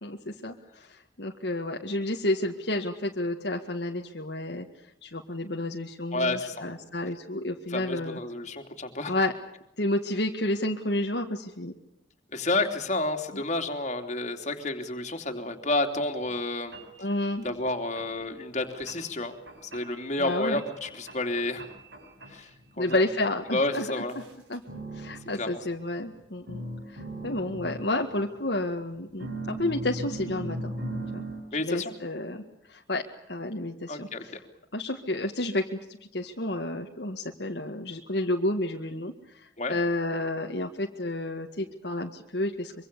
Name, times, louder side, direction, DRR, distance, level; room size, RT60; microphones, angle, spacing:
voice 1, 0.0-4.7 5.0-8.2 9.1-9.3 9.8-11.7 17.0-17.5 20.2-20.6 22.8-24.2 24.5-24.6 24.9-30.7 31.1-31.3 31.6-32.4 32.7-33.0 33.3-34.4 34.7-42.7, left 1 dB, 60° left, 2 dB, 1.9 m, -31 dB
voice 2, 6.1-6.7 7.7-9.1 12.3-16.8 17.4-19.4 19.6-21.6 22.3-22.5 22.8-23.0 23.5-24.1 25.4-25.6 31.5-31.9 33.9-34.2 39.6-39.8, left 2 dB, 40° left, 4 dB, 3.1 m, -30 dB
sound 1, 16.2-16.3 16.7-17.2 17.6-18.1 18.6-19.1 19.5-20.0 20.3-22.6 22.9-23.3 24.1-26.2 26.5-28.6 29.2-31.4, right 1 dB, 70° right, 7.9 m, -39 dB
25.0 x 24.5 x 6.9 m, 0.84 s
head